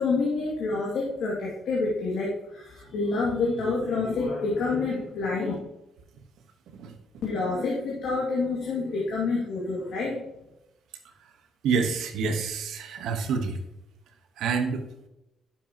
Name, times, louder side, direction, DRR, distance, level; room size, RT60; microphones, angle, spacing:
voice 1, 0.0-5.5 7.2-10.2, left 3 dB, 75° left, -4 dB, 2.3 m, -28 dB
voice 2, 11.6-13.6 14.4-14.8, right 5 dB, 80° right, 5 dB, 1.3 m, -27 dB
10.0 x 7.2 x 3.0 m, 0.89 s
cardioid pair, 90°, 0 cm